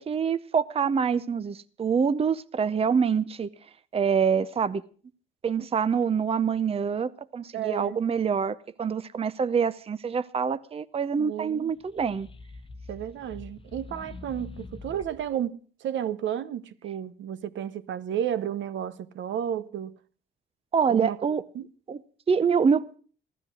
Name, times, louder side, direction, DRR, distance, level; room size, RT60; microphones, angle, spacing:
voice 1, 0.0-3.5 3.9-4.8 5.4-12.3 20.7-21.4 21.9-22.0 22.3-22.8, right 6 dB, 30° right, 0.7 m, -25 dB
voice 2, 7.5-8.0 11.2-11.7 12.9-19.9 20.9-21.2 21.5-21.7, right 10 dB, 70° right, 0.9 m, -32 dB
sound 1, 11.7-15.4, left 3 dB, 25° left, 0.8 m, -44 dB
15.5 x 12.5 x 6.1 m
cardioid pair, 90°, 20 cm